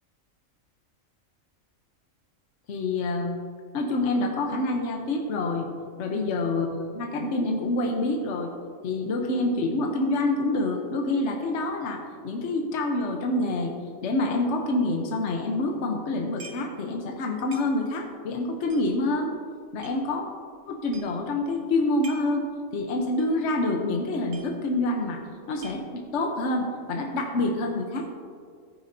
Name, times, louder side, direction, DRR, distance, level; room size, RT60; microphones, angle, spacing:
voice 1, 2.7-3.4 3.7-5.7 6.0-8.5 8.8-13.7 14.0-19.3 19.7-20.3 20.7-22.4 22.7-28.1, left 2 dB, 60° left, 2 dB, 1.1 m, -27 dB
sound 1, 16.4-16.8 17.1-17.2 17.5-18.1 18.7-20.0 20.5-20.6 20.9-21.3 21.8-22.4 22.7-22.8 23.2-23.4 23.7-23.8 24.0-24.9 25.2-26.2, right 3 dB, 55° right, 1.2 m, -47 dB
14.5 x 9.4 x 2.7 m, 2.1 s
omnidirectional pair, 1.4 m